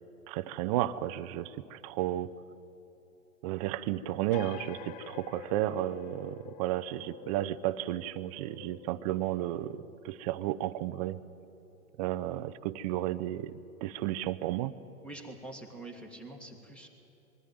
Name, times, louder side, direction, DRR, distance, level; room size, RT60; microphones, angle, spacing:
voice 1, 0.3-2.3 3.4-11.2 12.0-13.5 13.8-14.7, right 14 dB, 25° right, 14 dB, 0.5 m, -33 dB
sound 1, 4.3-11.5, left 12 dB, 30° left, 0.5 m, -49 dB
voice 2, 15.0-16.9, right 2 dB, ahead, 4 dB, 1.8 m, -45 dB
21.5 x 15.0 x 9.4 m, 3.0 s
hypercardioid pair, 120°, 43 cm